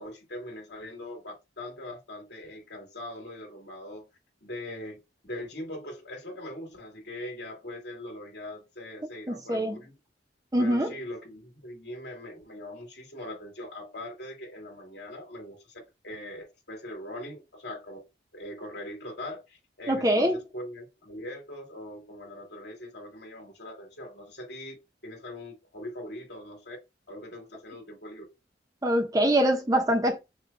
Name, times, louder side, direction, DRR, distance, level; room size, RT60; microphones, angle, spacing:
voice 1, 0.0-4.1 4.4-5.0 5.2-10.0 10.6-18.0 18.3-24.8 25.0-26.8 27.1-28.2, left 1 dB, 70° left, 2.7 m, -41 dB
voice 2, 9.3-9.8 10.5-10.9 19.9-20.4 28.8-30.2, right 1 dB, 20° right, 0.8 m, -24 dB
5.8 x 2.4 x 2.8 m
head